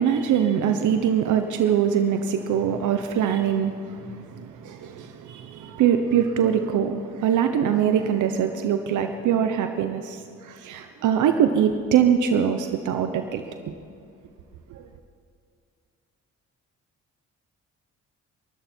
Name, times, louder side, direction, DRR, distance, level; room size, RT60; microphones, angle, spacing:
voice 1, 0.0-13.7 14.7-14.9, right 8 dB, 80° right, 7 dB, 1.0 m, -23 dB
23.0 x 13.0 x 4.5 m, 2.3 s
cardioid pair, 90°, 30 cm